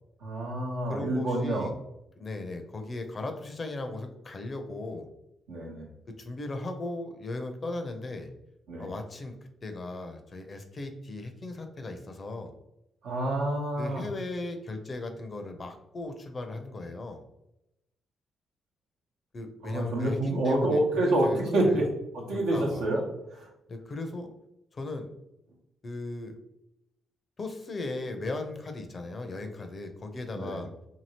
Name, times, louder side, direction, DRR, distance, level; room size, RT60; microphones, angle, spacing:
voice 1, 0.2-1.7 5.5-5.9 8.7-8.9 13.0-14.1 19.6-21.8 22.1-23.0 23.3-23.5 30.3-30.6, right 1 dB, 80° right, -2 dB, 0.8 m, -27 dB
voice 2, 0.9-1.7 2.2-5.1 6.2-8.3 8.8-9.3 9.6-12.5 13.8-17.2 19.3-21.8 22.3-22.9 23.7-24.3 24.7-25.1 25.8-26.3 27.4-30.7, left 2 dB, 45° left, 6 dB, 0.6 m, -37 dB
2.8 x 2.7 x 2.8 m, 0.87 s
hypercardioid pair, 45°, 0 cm